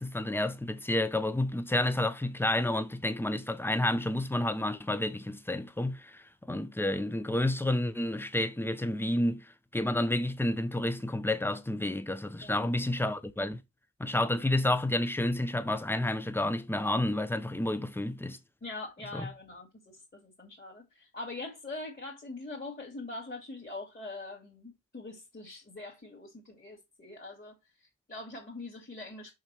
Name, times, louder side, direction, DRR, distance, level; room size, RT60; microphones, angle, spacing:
voice 1, 0.0-13.6 14.0-18.4 19.1-19.3, left 1 dB, 5° left, 0.8 m, -30 dB
voice 2, 18.6-19.7 19.9-29.3, left 2 dB, 25° left, 2.7 m, -43 dB
6.5 x 5.8 x 4.4 m
wide cardioid pair, 95°, 34 cm